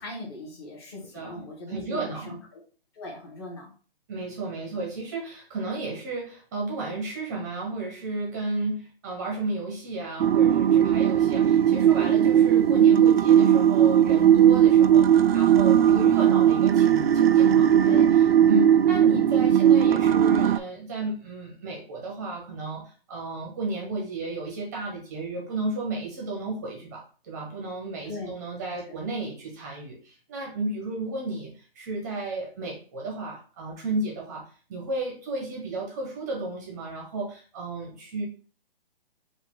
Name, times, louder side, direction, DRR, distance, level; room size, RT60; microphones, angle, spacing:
voice 1, 0.0-2.6 2.9-3.7 15.7-16.0 17.7-18.1 28.1-28.3, left 2 dB, 25° left, -2 dB, 1.3 m, -39 dB
voice 2, 1.1-2.4 4.1-38.2, right 2 dB, 20° right, -1 dB, 0.8 m, -33 dB
sound 1, 10.2-20.6, right 9 dB, 90° right, 0.5 m, -18 dB
4.7 x 2.6 x 3.7 m, 0.39 s
hypercardioid pair, 170°, 30 cm